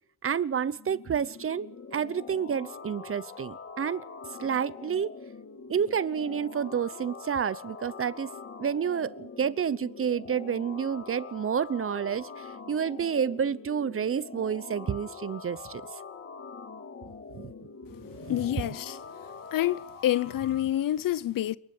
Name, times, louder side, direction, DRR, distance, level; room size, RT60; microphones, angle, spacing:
voice 1, 0.2-4.1 4.4-5.1 5.7-8.3 8.6-15.8 17.4-17.5 18.2-18.4 18.6-18.7, right 7 dB, 35° right, 0.8 m, -29 dB
sound 1, 0.8-20.7, left 4 dB, 40° left, 3.5 m, -44 dB
voice 2, 18.3-19.0 19.5-21.6, left 13 dB, 65° left, 0.9 m, -27 dB
28.5 x 11.5 x 8.4 m
cardioid pair, 80°, 37 cm